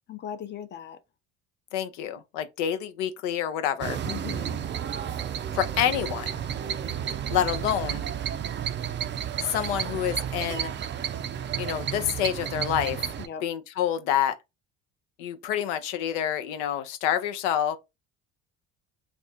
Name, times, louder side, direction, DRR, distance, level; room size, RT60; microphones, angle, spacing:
voice 1, 0.1-1.0 4.0-4.6 13.2-13.4, left 9 dB, 30° left, 0.5 m, -38 dB
voice 2, 1.7-4.0 5.5-6.3 7.3-8.1 9.4-10.7 11.6-13.0 13.4-14.4 15.2-17.8, left 10 dB, 80° left, 0.5 m, -27 dB
sound 1, 3.8-13.3, right 9 dB, 30° right, 0.4 m, -32 dB
2.5 x 2.3 x 4.0 m
hypercardioid pair, 70°, 36 cm